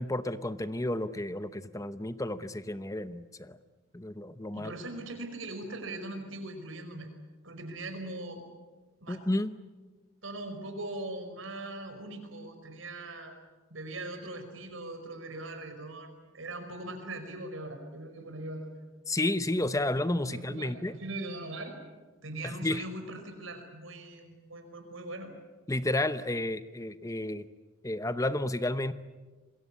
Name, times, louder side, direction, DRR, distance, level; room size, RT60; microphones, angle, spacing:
voice 1, 0.0-3.6 3.9-4.7 9.1-9.5 19.1-20.9 22.4-22.9 25.7-27.5 27.8-28.9, left 1 dB, 15° left, 13 dB, 0.9 m, -31 dB
voice 2, 4.5-7.1 7.4-8.4 9.0-9.2 10.2-13.4 13.7-18.9 20.3-21.8 22.2-25.3, right 2 dB, 80° right, 6 dB, 5.2 m, -40 dB
27.5 x 22.0 x 8.5 m, 1.3 s
head